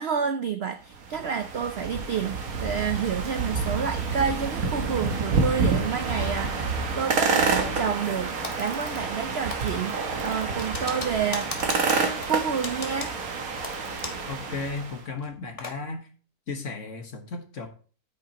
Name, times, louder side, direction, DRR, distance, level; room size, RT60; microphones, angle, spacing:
voice 1, 0.0-11.8 12.3-13.1, right 7 dB, 75° right, 8 dB, 0.5 m, -29 dB
sound 1, 0.9-15.0, right 4 dB, 60° right, 1.6 m, -28 dB
Typing, 8.4-9.2 9.5-14.3 14.6-14.7 15.2-15.8, left 2 dB, 25° left, 1.2 m, -37 dB
voice 2, 14.3-16.1 16.5-17.7, left 3 dB, 50° left, 4 dB, 1.6 m, -35 dB
9.3 x 8.6 x 2.9 m, 0.39 s
omnidirectional pair, 1.8 m